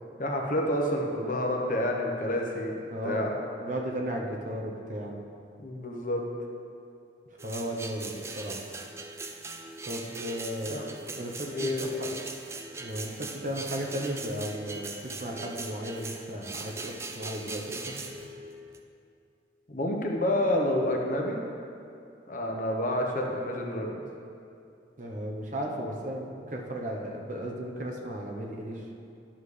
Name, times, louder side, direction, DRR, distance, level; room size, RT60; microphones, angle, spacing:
voice 1, 0.2-3.3 5.6-6.2 10.7-10.8 11.4-11.9 19.7-21.4 22.3-24.0, left 1 dB, 45° left, 1 dB, 0.9 m, -29 dB
voice 2, 2.9-3.3 3.6-5.1 7.4-8.6 9.8-12.1 12.8-18.0 25.0-28.8, right 1 dB, 45° right, 0 dB, 0.9 m, -35 dB
sound 1, 7.4-18.8, right 3 dB, 15° right, 0.4 m, -40 dB
11.0 x 7.2 x 3.3 m, 2.5 s
head